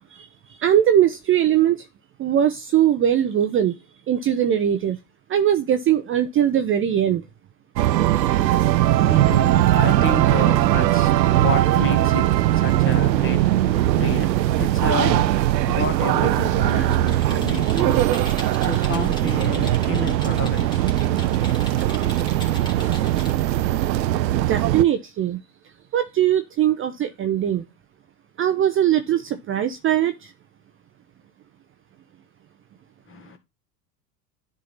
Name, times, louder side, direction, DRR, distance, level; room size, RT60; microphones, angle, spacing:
voice 1, 0.1-1.8 2.2-3.8 4.1-5.0 5.3-7.2 17.9-18.7 24.3-25.4 25.9-27.6 28.4-30.3, right 10 dB, 25° right, 0.6 m, -21 dB
sound 1, 7.8-24.8, right 14 dB, 90° right, 0.6 m, -20 dB
voice 2, 8.4-21.2 33.1-33.4, left 5 dB, 25° left, 1.9 m, -31 dB
Computer keyboard, 16.6-23.4, left 2 dB, 10° left, 2.3 m, -39 dB
10.0 x 3.8 x 3.9 m
hypercardioid pair, 95°, 50 cm